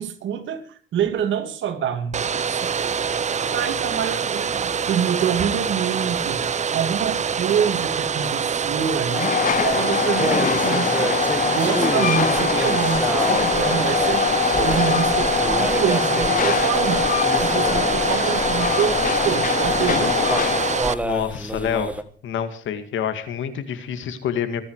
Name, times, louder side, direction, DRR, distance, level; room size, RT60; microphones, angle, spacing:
voice 1, 0.0-2.9 3.5-9.3 9.6-11.1 11.4-14.3 14.6-17.1 17.4-20.2, right 8 dB, 75° right, 7 dB, 2.6 m, -26 dB
Domestic sounds home sounds, 2.1-20.9, right 6 dB, 35° right, 0.7 m, -25 dB
sound 1, 8.2-22.0, right 1 dB, 5° right, 1.4 m, -31 dB
Train, 9.1-21.0, left 8 dB, 45° left, 0.8 m, -23 dB
voice 2, 21.0-24.6, left 8 dB, 75° left, 10 dB, 2.2 m, -27 dB
24.0 x 10.5 x 4.8 m, 0.42 s
cardioid pair, 90°, 20 cm